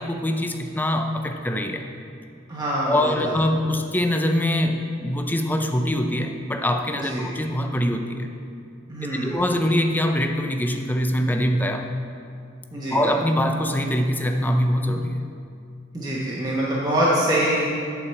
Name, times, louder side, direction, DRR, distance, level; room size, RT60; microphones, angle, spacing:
voice 1, 0.0-1.9 2.9-8.3 9.2-11.9 12.9-15.3, left 1 dB, 10° left, 5 dB, 0.5 m, -23 dB
voice 2, 2.5-3.3 7.0-7.3 8.9-9.4 12.7-13.0 15.9-17.7, right 1 dB, 20° right, -7 dB, 1.2 m, -24 dB
8.7 x 4.8 x 7.0 m, 2.4 s
head